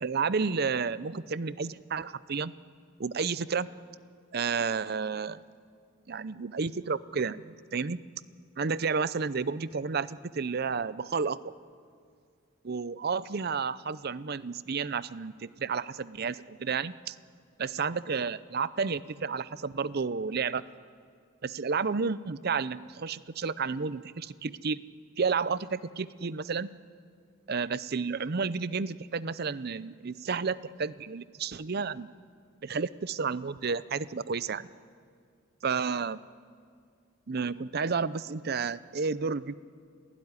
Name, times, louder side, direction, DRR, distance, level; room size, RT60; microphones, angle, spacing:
voice 1, 0.0-2.5 3.0-3.7 4.3-5.4 6.1-8.0 8.6-11.4 12.6-17.2 17.6-20.6 21.4-24.8 25.2-26.7 27.5-32.1 32.6-34.7 35.6-36.2 37.3-39.5, right 5 dB, 50° right, 16 dB, 0.6 m, -31 dB
27.5 x 16.5 x 9.7 m, 2.2 s
head